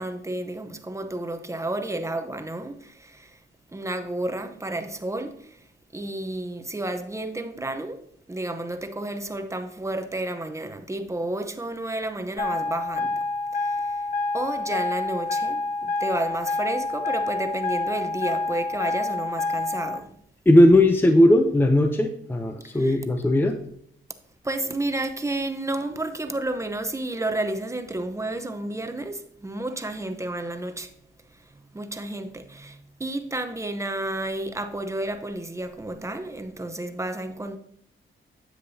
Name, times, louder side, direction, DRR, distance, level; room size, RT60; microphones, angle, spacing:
voice 1, 0.0-3.4 3.7-5.6 5.9-8.0 8.3-13.2 13.5-14.0 14.3-20.1 22.7-23.0 24.4-30.9 31.3-37.6, right 2 dB, 15° right, 0.8 m, -31 dB
sound 1, 12.4-20.0, left 3 dB, 40° left, 0.8 m, -27 dB
voice 2, 20.5-23.6, left 1 dB, 10° left, 0.6 m, -17 dB
9.9 x 7.5 x 2.8 m
cardioid pair, 95°, 21 cm